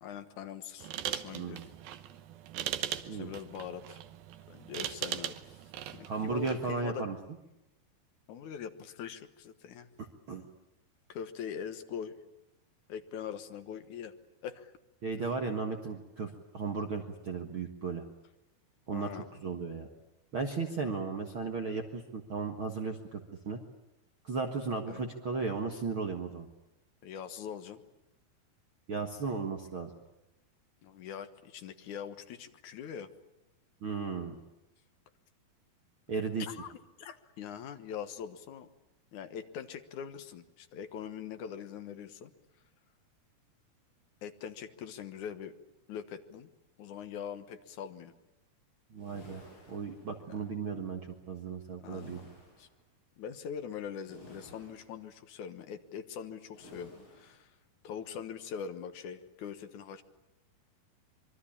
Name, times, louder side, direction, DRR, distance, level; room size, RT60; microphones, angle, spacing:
voice 1, 0.0-1.6 3.1-4.0 4.5-5.6 5.9-7.0 8.3-9.9 11.1-12.1 12.9-14.1 14.4-14.7 18.9-19.3 24.9-25.0 27.0-27.8 30.8-33.1 36.4-38.7 39.1-42.3 44.2-45.5 45.9-46.5 46.8-48.1 50.2-50.5 51.8-52.3 52.6-52.7 53.2-57.5 57.8-60.0, left 8 dB, 60° left, 9 dB, 2.3 m, -42 dB
sound 1, 0.8-6.7, right 11 dB, 75° right, 2.8 m, -40 dB
voice 2, 1.3-1.7 3.0-3.3 6.1-7.2 10.3-10.4 15.0-18.0 18.9-19.9 20.3-23.6 24.2-26.5 28.9-29.9 33.8-34.4 36.1-36.5 48.9-52.2, right 4 dB, 50° right, 3 dB, 1.7 m, -35 dB
sound 2, 48.9-50.6 51.9-52.8 54.0-55.1 56.5-57.5, left 1 dB, 30° left, 7.4 m, -55 dB
26.0 x 23.0 x 8.7 m, 0.92 s
omnidirectional pair, 4.5 m